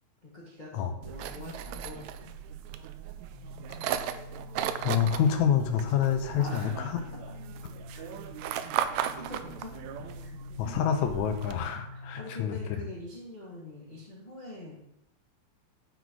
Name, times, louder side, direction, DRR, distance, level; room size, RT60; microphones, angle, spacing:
voice 1, 0.2-2.3 6.3-6.9 7.9-8.1 8.8-9.7 10.2-10.3 11.9-14.8, left 2 dB, 20° left, -5 dB, 1.2 m, -44 dB
sound 1, 1.0-11.6, right 10 dB, 80° right, 1.8 m, -37 dB
sound 2, 3.3-13.1, left 2 dB, 60° left, 2.9 m, -46 dB
voice 2, 4.8-7.0 10.6-12.6, left 8 dB, 80° left, 5 dB, 2.2 m, -27 dB
11.0 x 4.2 x 4.6 m, 0.81 s
omnidirectional pair, 3.4 m